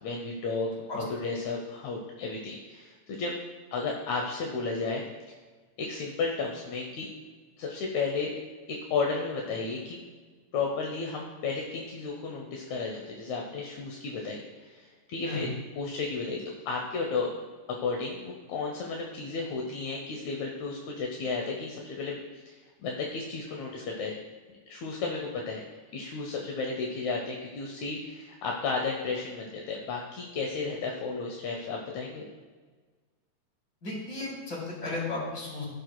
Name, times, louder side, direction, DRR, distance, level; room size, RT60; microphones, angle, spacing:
voice 1, 0.0-3.3 3.7-5.0 5.8-7.1 7.6-8.3 8.7-10.0 10.5-15.5 15.8-16.4 16.7-17.3 17.8-22.5 22.8-24.1 24.7-25.6 25.9-32.3, left 4 dB, 75° left, 0 dB, 2.1 m, -33 dB
voice 2, 33.8-35.7, left 2 dB, 35° left, -5 dB, 3.5 m, -34 dB
17.0 x 6.1 x 2.2 m, 1.4 s
omnidirectional pair, 3.4 m